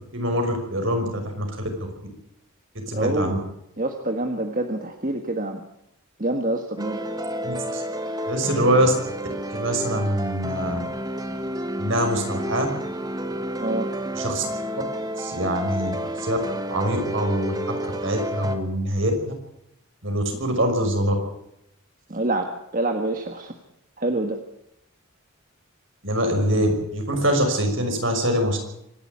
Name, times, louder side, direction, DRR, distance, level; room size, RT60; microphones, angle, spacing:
voice 1, 0.1-1.5 2.7-3.4 7.4-7.8 8.3-8.9 9.5-10.8 11.8-12.7 14.2-14.4 15.2-16.4 16.7-19.2 20.0-21.1 26.0-28.6, equal, 60° right, 4 dB, 6.0 m, -24 dB
voice 2, 2.9-3.4 3.8-5.6 6.2-7.0 13.6-13.9 22.1-23.5 24.0-24.4, right 2 dB, 40° right, 5 dB, 1.6 m, -26 dB
sound 1, 6.8-18.6, equal, 15° right, 1.4 m, -30 dB
25.5 x 12.0 x 9.5 m, 0.80 s
head